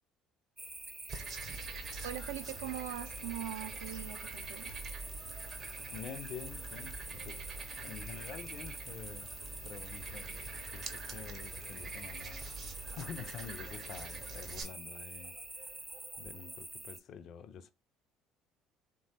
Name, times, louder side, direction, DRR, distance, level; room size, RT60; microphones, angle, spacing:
sound 1, 0.6-17.0, right 2 dB, 15° right, 0.4 m, -47 dB
voice 1, 1.0-1.3 2.0-4.8, right 10 dB, 85° right, 0.4 m, -42 dB
Frog, 1.1-14.6, right 4 dB, 50° right, 0.7 m, -45 dB
voice 2, 5.9-7.5 7.8-9.3 9.6-15.8 16.2-17.7, left 7 dB, 55° left, 0.4 m, -48 dB
3.0 x 2.2 x 2.7 m
hypercardioid pair, 60°, 0 cm